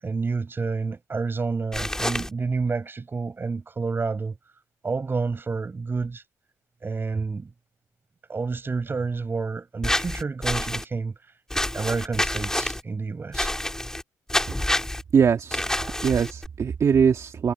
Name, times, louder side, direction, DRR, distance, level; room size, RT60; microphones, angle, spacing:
voice 1, 0.0-4.4 4.8-6.2 6.8-7.5 8.3-11.1 11.7-13.5, right 4 dB, 35° right, 6.8 m, -29 dB
sound 1, 1.7-2.3 9.8-10.8 11.5-12.8 13.3-14.0 14.3-15.0 15.5-16.5, left 1 dB, 10° left, 4.2 m, -27 dB
voice 2, 15.1-17.5, right 6 dB, 50° right, 2.1 m, -22 dB
supercardioid pair, 65°, 7 cm